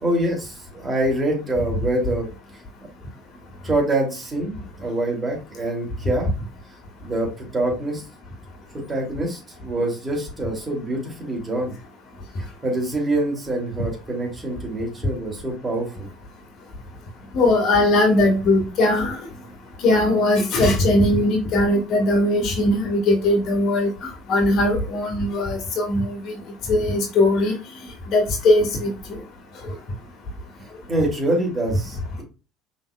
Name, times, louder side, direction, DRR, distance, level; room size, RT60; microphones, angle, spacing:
voice 1, 0.0-2.3 3.6-6.3 7.0-8.0 8.7-11.7 12.6-16.1 30.6-32.2, right 1 dB, 25° right, 0 dB, 2.7 m, -25 dB
voice 2, 17.3-19.2 19.8-23.9 24.3-26.4 26.7-27.5 28.1-29.2, left 1 dB, 55° left, 2 dB, 1.6 m, -19 dB
5.6 x 3.9 x 2.3 m, 0.32 s
hypercardioid pair, 65°, 0 cm